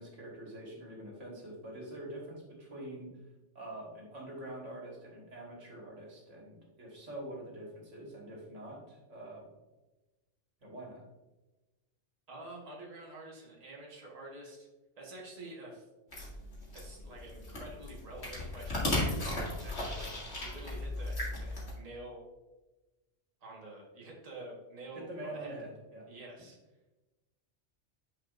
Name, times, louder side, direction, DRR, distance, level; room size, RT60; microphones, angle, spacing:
voice 1, 0.0-3.1 3.6-9.4 10.6-11.0 24.9-26.1, right 1 dB, 80° right, -2 dB, 1.9 m, -45 dB
voice 2, 12.3-14.7 15.0-15.8 16.7-20.1 20.4-22.2 23.4-25.5 26.1-26.6, right 2 dB, 35° right, -2 dB, 1.4 m, -48 dB
sound 1, 16.1-21.7, left 1 dB, 60° left, 2.3 m, -36 dB
9.5 x 4.9 x 2.5 m, 1.1 s
omnidirectional pair, 1.2 m